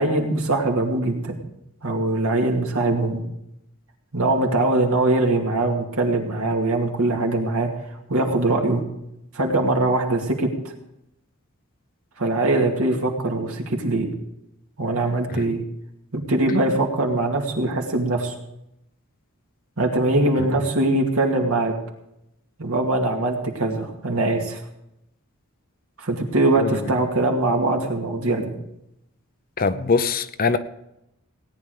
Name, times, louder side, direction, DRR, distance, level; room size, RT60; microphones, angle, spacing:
voice 1, 0.0-1.4 1.8-3.2 4.1-7.7 8.1-8.8 9.3-10.5 12.2-14.1 14.8-15.6 16.1-18.3 19.8-21.7 22.6-24.6 26.0-28.5, right 2 dB, 75° right, 2 dB, 2.3 m, -22 dB
voice 2, 29.6-30.6, left 4 dB, 40° left, 11 dB, 0.6 m, -22 dB
17.5 x 9.9 x 4.9 m, 0.84 s
head